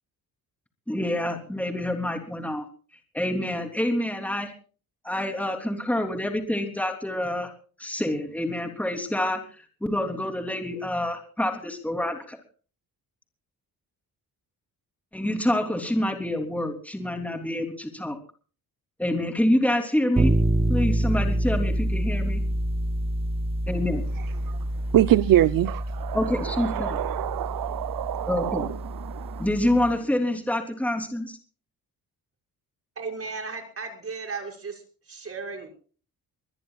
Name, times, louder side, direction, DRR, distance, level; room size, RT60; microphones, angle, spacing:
voice 1, 0.9-2.6 3.1-4.5 5.0-7.5 7.8-12.4 15.1-18.2 19.0-20.4 20.7-22.4 23.7-24.0 26.1-27.0 28.3-28.7 29.4-31.4, left 1 dB, 5° left, 4 dB, 3.4 m, -27 dB
sound 1, 20.2-30.0, right 1 dB, 15° right, 0.8 m, -27 dB
voice 2, 24.9-28.7 29.1-29.5, right 13 dB, 70° right, 15 dB, 0.8 m, -24 dB
voice 3, 33.0-35.7, right 4 dB, 40° right, 3 dB, 6.4 m, -35 dB
24.0 x 20.5 x 2.4 m, 0.40 s
cardioid pair, 130°, 36 cm